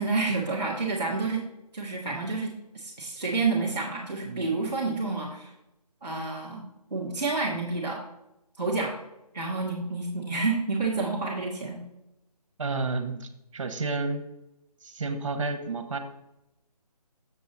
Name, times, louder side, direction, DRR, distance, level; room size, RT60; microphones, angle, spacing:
voice 1, 0.0-1.4 1.7-5.5 6.0-6.6 6.9-8.0 8.6-9.0 9.3-11.8, right 3 dB, ahead, -16 dB, 0.4 m, -29 dB
voice 2, 12.6-14.2 14.8-16.0, right 3 dB, 50° right, 8 dB, 1.1 m, -31 dB
7.0 x 6.7 x 4.2 m, 0.88 s
figure-of-eight pair, 150°, 20 cm